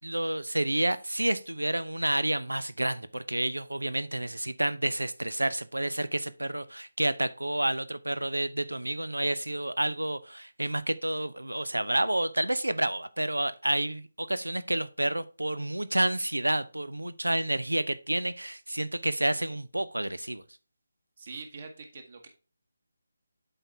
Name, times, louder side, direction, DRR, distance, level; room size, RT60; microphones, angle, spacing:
voice 1, 0.0-20.4, right 1 dB, 80° right, 0.7 m, -29 dB
voice 2, 21.2-22.3, right 4 dB, 45° right, 1.5 m, -44 dB
7.9 x 4.0 x 4.5 m
figure-of-eight pair, 150°, 0 cm